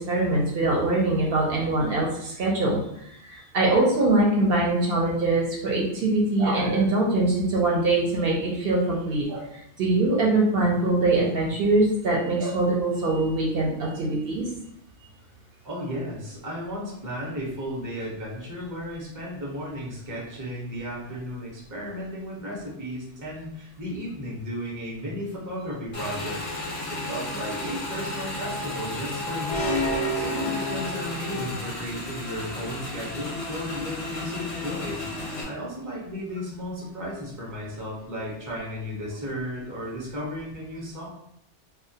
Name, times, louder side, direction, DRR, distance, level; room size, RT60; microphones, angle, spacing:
voice 1, 0.0-14.5, right 2 dB, 65° right, -3 dB, 0.7 m, -23 dB
voice 2, 15.6-29.8 30.1-41.1, equal, 25° right, -4 dB, 0.5 m, -34 dB
Motorcycle / Engine, 25.9-35.4, left 2 dB, 45° left, 0.4 m, -33 dB
sound 1, 29.5-31.5, equal, 85° left, 0.9 m, -29 dB
2.2 x 2.1 x 2.6 m, 0.74 s
omnidirectional pair, 1.2 m